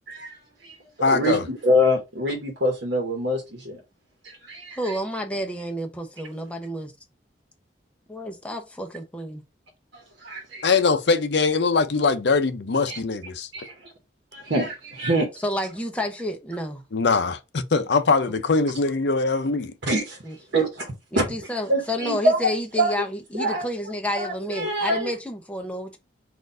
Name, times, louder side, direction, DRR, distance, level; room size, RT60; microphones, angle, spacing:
voice 1, 0.1-0.7 1.1-3.8 4.2-4.9 10.2-10.7 12.9-13.0 13.5-13.9 14.3-15.3 19.8-20.2 20.5-21.2 21.7-22.4 22.8-22.9 23.4-23.7 24.1-25.1, equal, 70° right, 1.1 m, -25 dB
voice 2, 1.0-1.5 10.6-13.5 16.9-19.7, left 4 dB, 65° left, 0.5 m, -22 dB
voice 3, 4.7-6.9 8.1-9.4 15.4-16.8 20.2-20.3 21.1-26.0, left 1 dB, 5° left, 0.6 m, -30 dB
4.3 x 2.5 x 3.7 m
head